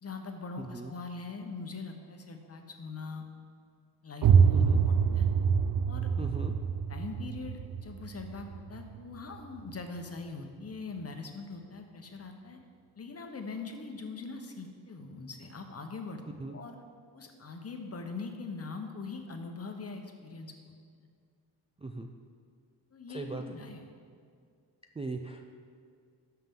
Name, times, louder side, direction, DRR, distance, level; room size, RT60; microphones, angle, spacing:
voice 1, 0.0-3.2 4.0-5.3 5.9-6.1 6.9-12.6 13.0-16.8 17.1-20.6 22.9-23.8, left 4 dB, 35° left, 4 dB, 0.9 m, -42 dB
voice 2, 0.6-0.9 4.5-4.8 6.2-6.5 16.4-16.6 21.8-22.1 23.1-23.4 25.0-25.5, right 3 dB, 15° right, 3 dB, 0.3 m, -38 dB
sound 1, 4.2-9.8, right 6 dB, 65° right, 0.5 m, -26 dB
13.0 x 5.7 x 3.7 m, 2.2 s
cardioid pair, 100°, 42 cm